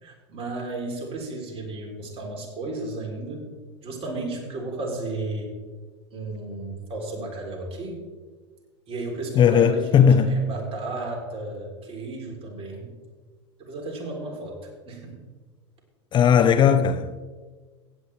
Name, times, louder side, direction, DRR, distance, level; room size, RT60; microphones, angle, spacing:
voice 1, 0.0-3.5 3.8-5.5 6.1-8.0 8.9-12.9 13.6-14.6 14.9-15.2, right 2 dB, 40° right, 3.6 m, -33 dB
voice 2, 9.4-10.3 16.1-17.2, left 8 dB, 30° left, 0.6 m, -17 dB
16.0 x 9.1 x 3.4 m
hypercardioid pair, 90°, 15 cm